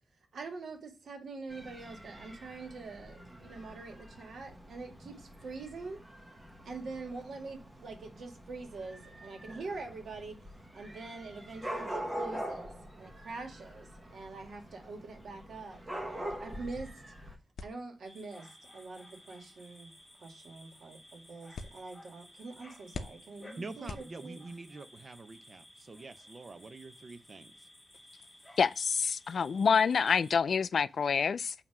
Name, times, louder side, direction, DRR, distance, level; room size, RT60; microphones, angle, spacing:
voice 1, 0.3-6.0 6.6-10.4 10.7-15.8 16.1-16.9 17.6-18.5 18.7-19.9 20.2-24.4, right 3 dB, 75° right, 1.8 m, -44 dB
Dog / Cat, 1.5-17.4, right 1 dB, 15° right, 1.1 m, -44 dB
sound 1, 17.6-24.7, left 4 dB, 80° left, 0.7 m, -49 dB
sound 2, 18.0-30.4, left 1 dB, 5° left, 1.9 m, -56 dB
voice 2, 23.6-27.5, right 3 dB, 35° right, 0.6 m, -46 dB
voice 3, 28.6-31.5, left 6 dB, 60° left, 0.3 m, -27 dB
7.4 x 2.9 x 5.9 m
wide cardioid pair, 160°, 0 cm